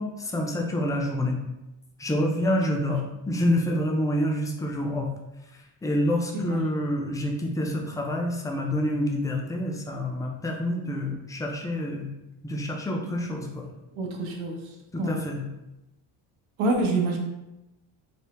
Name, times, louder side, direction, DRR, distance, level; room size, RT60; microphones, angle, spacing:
voice 1, 0.0-1.4 2.0-5.1 5.8-12.1 12.4-13.6 14.9-15.4, left 1 dB, 10° left, 1 dB, 0.4 m, -27 dB
voice 2, 6.4-6.8 14.0-14.6 15.0-15.2 16.6-17.2, right 2 dB, 80° right, 1 dB, 0.8 m, -26 dB
3.4 x 2.1 x 2.9 m, 0.95 s
cardioid pair, 80°, 48 cm